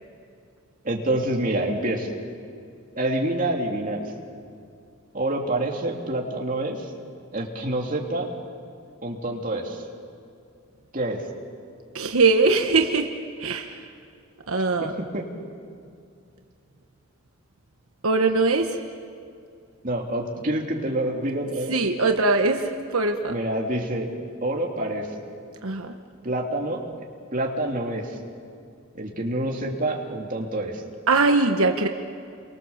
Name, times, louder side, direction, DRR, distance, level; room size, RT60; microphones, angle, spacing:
voice 1, 0.8-2.1 2.9-4.0 5.1-6.9 7.3-8.3 9.0-9.8 10.9-11.2 15.1-15.2 19.8-21.8 23.3-24.1 24.4-25.1 26.2-26.8 27.3-28.2 28.9-30.8, right 1 dB, 35° right, 0 dB, 3.0 m, -27 dB
voice 2, 11.9-13.1 13.4-13.9 14.5-14.9 18.0-18.8 21.7-23.3 25.6-26.0 31.1-31.9, right 3 dB, 80° right, 5 dB, 1.3 m, -21 dB
29.5 x 24.0 x 7.3 m, 2.4 s
head